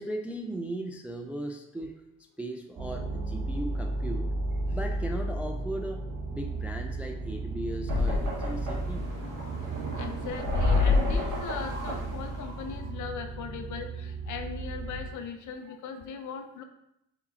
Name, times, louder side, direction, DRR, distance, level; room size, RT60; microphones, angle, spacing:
voice 1, 0.0-2.0 2.4-4.3 4.7-9.1, right 1 dB, 5° right, 4 dB, 0.3 m, -37 dB
sound 1, 2.8-15.2, right 2 dB, 60° right, 0.9 m, -35 dB
sound 2, 7.9-12.9, left 3 dB, 80° right, 1.5 m, -29 dB
voice 2, 10.0-16.6, left 6 dB, 50° left, 7 dB, 0.6 m, -39 dB
4.1 x 3.5 x 2.8 m, 0.81 s
hypercardioid pair, 40°, 40 cm